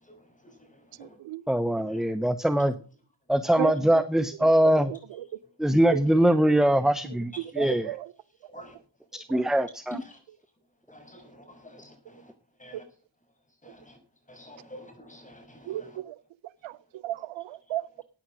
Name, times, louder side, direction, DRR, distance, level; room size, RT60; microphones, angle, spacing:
voice 1, 0.0-1.2 1.7-2.0 3.7-3.8 7.3-7.7 8.5-8.8 10.0-10.2 10.9-12.3 12.6-12.8 13.6-14.0 14.3-16.0, left 1 dB, 15° left, 6.2 m, -49 dB
voice 2, 1.5-2.7 3.3-4.9 5.6-7.9 9.1-10.0, right 1 dB, ahead, 0.7 m, -22 dB
voice 3, 3.6-4.0 5.9-6.0 7.6-8.1 9.3-9.4 15.7-16.1 16.6-16.7 17.0-18.0, right 13 dB, 85° right, 0.8 m, -33 dB
14.5 x 9.2 x 6.3 m
cardioid pair, 95°, 45 cm